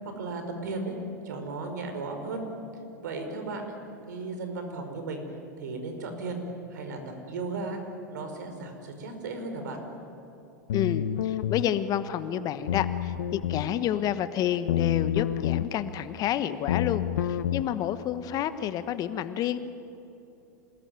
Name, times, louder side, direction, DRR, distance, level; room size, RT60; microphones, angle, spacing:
voice 1, 0.2-0.9 1.2-2.5 3.0-3.7 4.1-5.2 5.6-6.4 6.7-7.0 7.3-7.8 8.1-9.8, right 3 dB, 70° right, 5 dB, 5.2 m, -35 dB
sound 1, 10.7-11.7 12.7-13.7 14.7-15.7 16.7-17.6, left 10 dB, 70° left, 1.0 m, -28 dB
voice 2, 10.7-19.6, left 10 dB, 40° left, 12 dB, 1.3 m, -29 dB
26.5 x 20.5 x 9.6 m, 2.8 s
hypercardioid pair, 100°, 10 cm